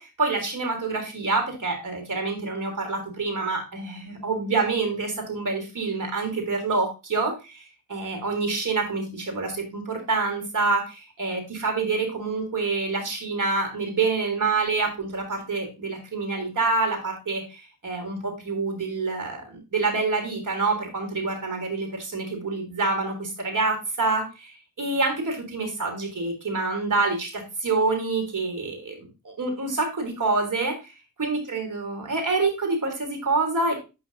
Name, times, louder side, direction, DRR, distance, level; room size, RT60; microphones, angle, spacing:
voice 1, 0.0-30.9 31.2-33.7, right 3 dB, 60° right, 3 dB, 3.4 m, -27 dB
10.5 x 5.0 x 2.7 m, 0.28 s
wide cardioid pair, 70°, 35 cm